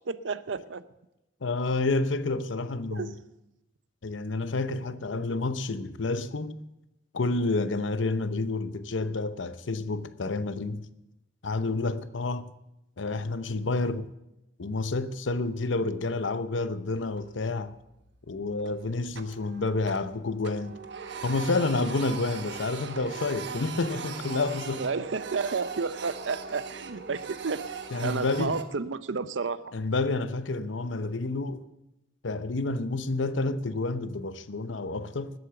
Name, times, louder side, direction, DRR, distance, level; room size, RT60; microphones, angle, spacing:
voice 1, 0.1-0.8 2.9-3.1 24.8-29.6, right 4 dB, 90° right, 0.7 m, -31 dB
voice 2, 1.4-3.1 4.0-6.6 7.1-10.9 11.4-12.5 13.0-14.1 14.6-17.7 18.3-20.7 21.2-24.9 27.9-28.6 29.7-31.6 32.2-35.3, left 3 dB, 90° left, 0.8 m, -29 dB
Printer, 17.0-17.7 18.0-18.2 18.6-20.2 20.4-28.6, right 5 dB, 65° right, 1.2 m, -40 dB
19.5 x 8.1 x 6.9 m
head